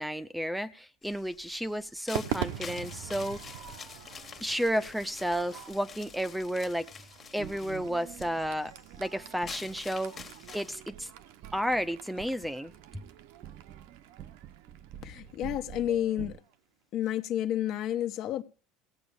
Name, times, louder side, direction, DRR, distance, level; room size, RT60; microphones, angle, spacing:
voice 1, 0.0-3.4 4.4-7.1 7.3-8.7 9.0-11.1 11.5-12.7, equal, 5° right, 0.7 m, -32 dB
sound 1, 1.0-10.8, left 6 dB, 30° left, 1.4 m, -48 dB
Crowd / Fireworks, 2.1-16.5, right 11 dB, 80° right, 1.0 m, -44 dB
sound 2, 7.4-16.4, right 10 dB, 50° right, 0.6 m, -48 dB
voice 2, 15.0-16.4 16.9-18.4, left 11 dB, 60° left, 1.2 m, -30 dB
17.0 x 8.1 x 7.0 m
supercardioid pair, 100°, 0 cm